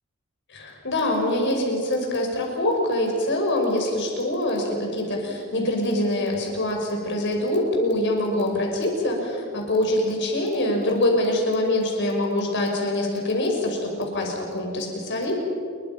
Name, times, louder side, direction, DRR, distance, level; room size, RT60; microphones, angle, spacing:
voice 1, 0.5-15.3, left 1 dB, 55° left, 1 dB, 5.8 m, -24 dB
28.5 x 22.5 x 6.0 m, 2.3 s
head